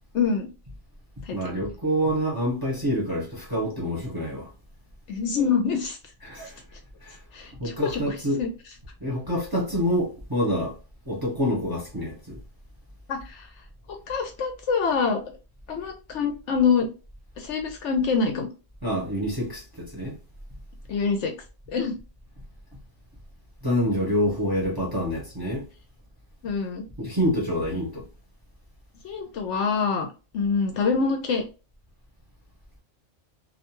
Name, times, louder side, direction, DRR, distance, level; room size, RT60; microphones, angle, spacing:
voice 1, 0.1-0.5 1.2-1.4 5.1-6.0 7.3-8.5 13.1-13.5 13.9-15.2 15.7-16.9 17.4-18.5 20.9-21.3 21.7-21.9 26.4-26.8 29.0-30.1 30.3-31.4, left 5 dB, 70° left, 0.8 m, -25 dB
voice 2, 1.3-4.5 6.2-6.6 7.0-7.2 7.6-8.4 9.0-10.8 11.1-12.4 18.8-20.1 23.6-25.7 27.0-28.0, equal, 20° right, 0.8 m, -27 dB
2.6 x 2.2 x 2.9 m
omnidirectional pair, 1.4 m